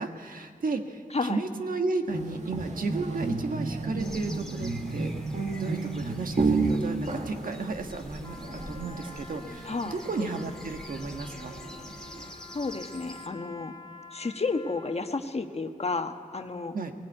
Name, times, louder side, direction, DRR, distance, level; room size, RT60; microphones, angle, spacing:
voice 1, 0.0-5.1 5.6-11.5 16.7-16.9, right 3 dB, 70° right, 5 dB, 1.6 m, -33 dB
sound 1, 2.1-12.3, right 3 dB, 55° right, 2.1 m, -32 dB
sound 2, 4.0-13.3, left 1 dB, 5° left, 2.4 m, -47 dB
Trumpet, 8.2-15.2, left 3 dB, 25° left, 1.9 m, -48 dB
voice 2, 9.6-10.0 12.5-13.7 14.1-16.7, left 3 dB, 45° left, 6 dB, 1.4 m, -31 dB
19.5 x 15.5 x 9.0 m, 2.1 s
cardioid pair, 55°, 15 cm